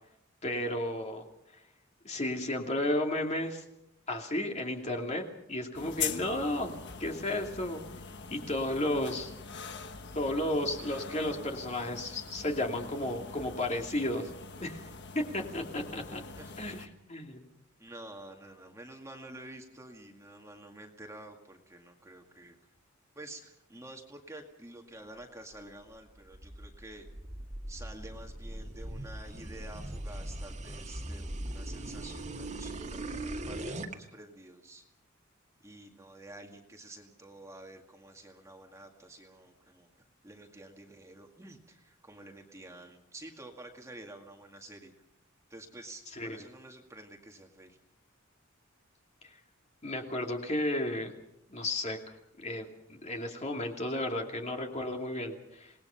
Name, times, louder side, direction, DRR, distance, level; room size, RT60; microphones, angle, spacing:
voice 1, 0.4-1.2 2.0-3.6 4.1-6.7 7.0-7.8 8.3-9.3 10.1-14.3 14.6-14.9 15.1-16.2 16.6-17.4 46.2-46.4 49.2-49.4 49.8-51.1 51.5-52.0 52.4-55.7, left 1 dB, 30° left, 2 dB, 2.6 m, -33 dB
sound 1, 5.7-16.9, left 6 dB, 55° left, 1.5 m, -43 dB
voice 2, 17.8-22.6 23.2-27.1 27.7-34.8 35.6-39.9 40.2-44.9 45.5-47.8, right 1 dB, 15° right, 2 dB, 2.1 m, -49 dB
sound 2, 25.9-34.0, right 1 dB, 35° right, 2.1 m, -40 dB
27.5 x 19.5 x 5.8 m, 0.82 s
head